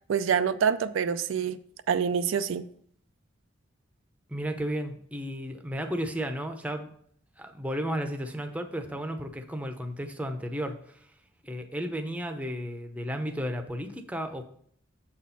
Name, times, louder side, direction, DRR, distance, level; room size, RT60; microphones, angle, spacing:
voice 1, 0.1-1.6 1.9-2.7, right 7 dB, 75° right, 11 dB, 0.4 m, -26 dB
voice 2, 4.3-6.9 7.4-11.0 11.4-14.4, equal, 5° right, 5 dB, 0.6 m, -33 dB
7.1 x 4.2 x 5.7 m, 0.63 s
head